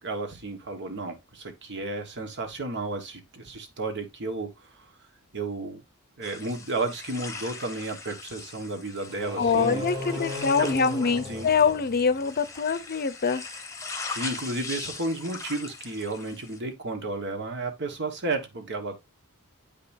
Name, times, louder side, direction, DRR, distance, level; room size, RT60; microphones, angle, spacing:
voice 1, 0.0-4.9 5.3-5.8 6.2-9.8 10.3-10.8 11.3-11.5 14.0-19.0, right 2 dB, 55° right, 1.5 m, -33 dB
sound 1, 6.2-16.6, left 4 dB, 15° left, 1.0 m, -40 dB
sound 2, 9.1-12.4, left 1 dB, 20° right, 1.6 m, -36 dB
voice 2, 9.4-13.4, left 5 dB, 45° left, 0.7 m, -24 dB
8.6 x 5.3 x 2.6 m
head